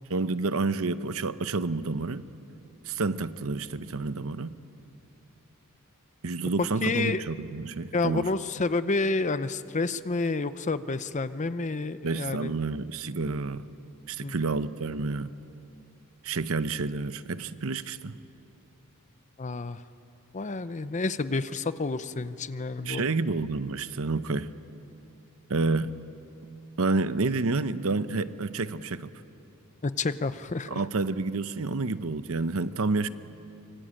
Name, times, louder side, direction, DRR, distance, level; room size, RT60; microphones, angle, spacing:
voice 1, 0.1-2.2 2.9-4.6 6.2-8.3 12.0-13.6 14.1-15.3 16.2-18.2 22.8-24.5 25.5-26.0 26.8-29.1 30.7-33.1, right 3 dB, 65° right, 13 dB, 0.8 m, -29 dB
voice 2, 6.8-7.2 7.9-12.5 14.2-14.3 19.4-19.8 20.3-23.1 29.8-30.8, left 3 dB, 35° left, 13 dB, 0.6 m, -29 dB
24.5 x 24.0 x 8.9 m, 2.7 s
head